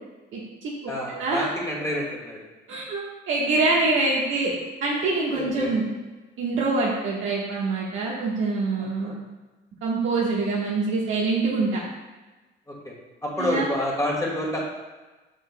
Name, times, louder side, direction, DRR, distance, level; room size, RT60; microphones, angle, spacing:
voice 1, 0.3-1.5 2.7-4.5 4.8-5.9 6.4-9.1 9.8-11.8 13.4-13.7, right 3 dB, 75° right, -6 dB, 1.3 m, -25 dB
voice 2, 0.9-2.4 5.3-5.8 8.8-9.2 12.7-12.9 13.2-14.6, left 1 dB, 15° left, -4 dB, 2.0 m, -28 dB
7.9 x 5.4 x 2.2 m, 1.2 s
cardioid pair, 90°, 20 cm